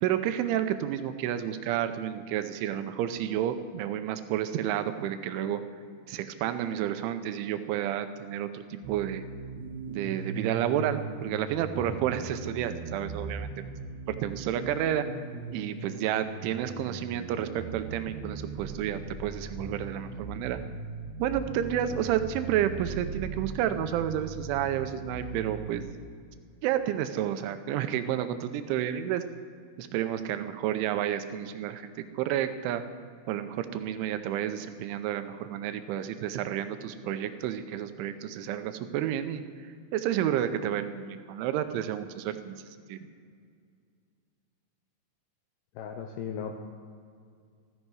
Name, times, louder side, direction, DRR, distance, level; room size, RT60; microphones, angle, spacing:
voice 1, 0.0-5.6 6.1-9.2 9.9-13.5 14.1-15.1 15.5-20.6 21.2-25.9 26.6-29.2 29.8-32.8 33.3-39.4 39.9-42.6 42.9-43.1, right 11 dB, 85° right, 10 dB, 3.1 m, -30 dB
sound 1, 8.8-25.8, right 4 dB, 70° right, 3.2 m, -39 dB
voice 2, 45.8-46.6, left 7 dB, 85° left, 3 dB, 2.2 m, -36 dB
14.5 x 13.5 x 4.8 m, 2.2 s
omnidirectional pair, 5.5 m